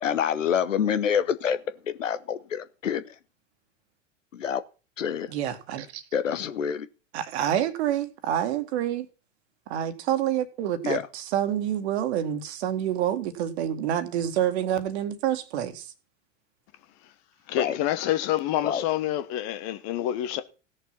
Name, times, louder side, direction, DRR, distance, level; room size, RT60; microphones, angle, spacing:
voice 1, 0.0-1.6 1.8-3.1 4.3-4.6 5.0-5.3 6.1-6.9 10.8-11.1 17.6-17.8 18.6-18.8, left 8 dB, 70° left, 1.0 m, -27 dB
voice 2, 5.3-6.0 7.1-9.1 9.7-15.9, right 10 dB, 55° right, 2.0 m, -27 dB
voice 3, 17.5-20.4, left 12 dB, 40° left, 1.2 m, -27 dB
16.5 x 6.9 x 5.6 m
figure-of-eight pair, 90°, 39 cm